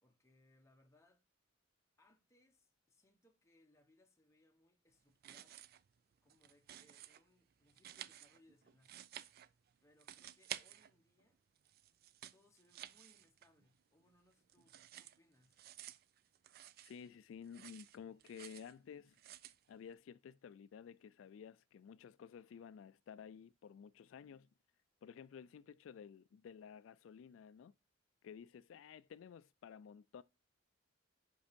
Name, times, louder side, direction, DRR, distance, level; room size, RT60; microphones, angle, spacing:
voice 1, 0.0-1.2 2.0-5.6 6.2-9.0 9.8-11.4 12.3-15.6, left 1 dB, 15° left, 1.0 m, -72 dB
sound 1, 5.1-5.9 6.2-7.2 7.7-9.7 10.0-11.2 11.6-13.7 14.0-17.1 17.4-18.7 19.1-19.6, right 11 dB, 50° right, 0.3 m, -53 dB
voice 2, 16.8-19.2 19.7-24.5 25.0-27.7 28.2-30.2, left 7 dB, 80° left, 0.3 m, -53 dB
5.3 x 5.2 x 5.1 m
head